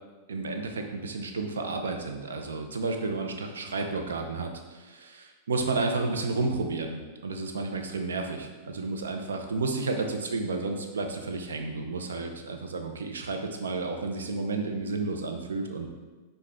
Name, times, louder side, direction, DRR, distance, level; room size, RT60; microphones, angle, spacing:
voice 1, 0.3-15.9, right 3 dB, 90° right, 4 dB, 0.5 m, -31 dB
5.1 x 2.3 x 4.3 m, 1.3 s
hypercardioid pair, 115°, 0 cm